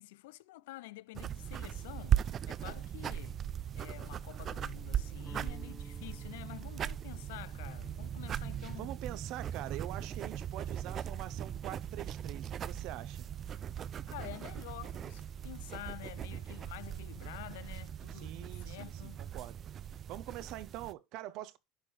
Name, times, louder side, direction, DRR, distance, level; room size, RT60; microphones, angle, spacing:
voice 1, 0.0-3.5 3.7-8.9 14.1-19.2, left 18 dB, 85° left, 0.3 m, -49 dB
sound 1, 1.1-20.9, right 9 dB, 35° right, 0.3 m, -39 dB
Guitar, 5.2-11.2, left 1 dB, 5° left, 0.8 m, -59 dB
voice 2, 8.8-13.3 18.1-19.6 20.1-21.6, right 14 dB, 60° right, 0.7 m, -44 dB
11.0 x 4.7 x 3.2 m
supercardioid pair, 115°, 0 cm